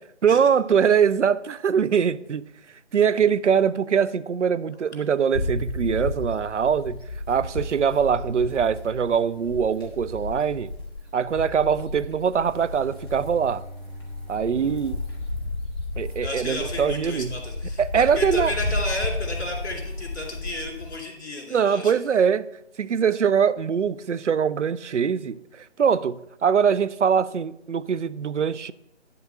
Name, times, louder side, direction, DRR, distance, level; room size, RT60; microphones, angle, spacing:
voice 1, 0.2-2.4 2.9-7.0 7.3-10.7 11.1-13.6 14.3-15.0 16.0-17.3 17.8-18.5 21.5-22.5 22.8-25.4 25.8-28.7, right 7 dB, 85° right, 0.5 m, -22 dB
sound 1, 5.3-20.9, left 2 dB, 20° left, 1.2 m, -33 dB
Bowed string instrument, 12.2-16.5, right 1 dB, 35° right, 1.3 m, -44 dB
voice 2, 16.2-21.9, left 2 dB, 65° left, 2.8 m, -33 dB
11.0 x 3.7 x 5.5 m
figure-of-eight pair, 160°, 35 cm